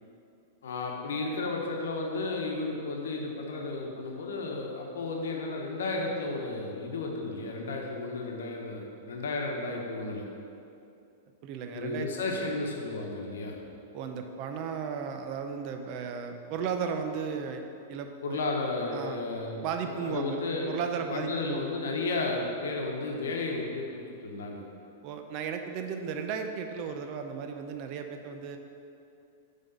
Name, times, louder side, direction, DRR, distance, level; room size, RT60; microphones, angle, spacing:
voice 1, 0.6-10.2 11.7-13.6 18.2-20.8 21.1-24.6, left 3 dB, 80° left, 0 dB, 0.9 m, -33 dB
voice 2, 11.4-12.1 13.9-17.6 17.9-18.4 18.9-19.2 19.6-20.4 20.7-21.7 25.0-28.6, right 6 dB, 45° right, 6 dB, 0.5 m, -35 dB
5.6 x 3.6 x 5.3 m, 2.6 s
hypercardioid pair, 125°, 0 cm